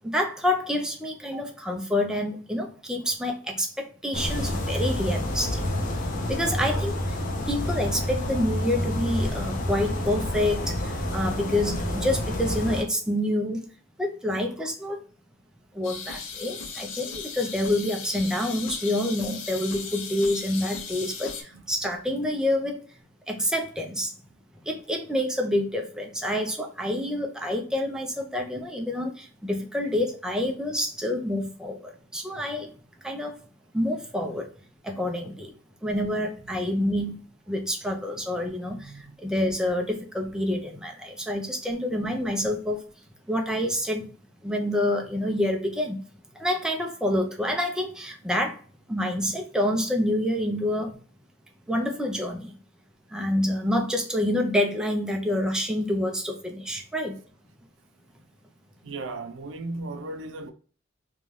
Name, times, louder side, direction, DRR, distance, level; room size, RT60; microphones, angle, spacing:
voice 1, 0.0-5.6 6.3-13.7 14.0-15.0 15.7-22.8 23.3-24.1 24.6-32.7 33.0-33.3 33.7-34.5 34.8-35.5 35.8-37.2 37.5-42.8 43.3-44.1 44.4-46.0 46.3-48.6 48.9-51.0 51.7-52.5 53.1-57.2, left 1 dB, 5° right, 0.4 m, -27 dB
sound 1, 4.1-12.8, left 1 dB, 45° left, 0.6 m, -28 dB
sound 2, 15.8-21.4, left 5 dB, 90° left, 0.6 m, -37 dB
voice 2, 38.3-39.3 42.1-42.3 58.8-60.5, right 2 dB, 75° right, 0.4 m, -37 dB
2.6 x 2.3 x 3.1 m
head